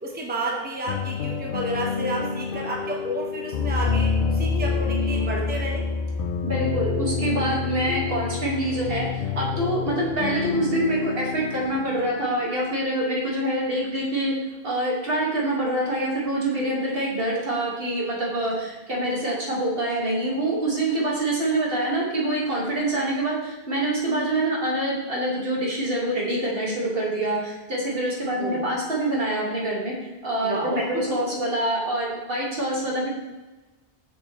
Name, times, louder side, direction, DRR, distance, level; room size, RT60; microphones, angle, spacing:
voice 1, 0.0-5.9 28.4-28.7 30.4-31.4, right 1 dB, 10° right, -2 dB, 0.9 m, -31 dB
sound 1, 0.9-12.6, left 5 dB, 65° left, 0.7 m, -27 dB
voice 2, 6.4-14.3 14.6-33.1, right 1 dB, 65° right, -4 dB, 1.9 m, -26 dB
6.7 x 6.3 x 3.1 m, 1.1 s
omnidirectional pair, 1.0 m